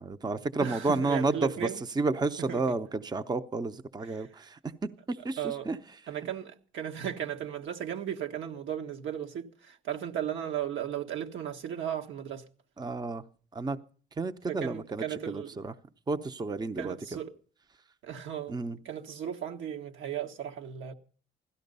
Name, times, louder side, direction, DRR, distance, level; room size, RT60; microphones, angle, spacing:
voice 1, 0.0-1.5 2.0-5.8 12.8-13.2 13.5-13.8 14.2-15.0 15.3-15.7 16.1-17.0 18.5-18.8, right 3 dB, 20° right, 0.7 m, -31 dB
voice 2, 0.6-1.8 2.4-2.8 4.0-4.3 5.4-5.7 6.1-12.5 14.5-15.6 16.7-17.3 18.0-18.6 18.8-20.9, right 9 dB, 75° right, 1.5 m, -36 dB
16.5 x 13.0 x 5.4 m
cardioid pair, 90°, 20 cm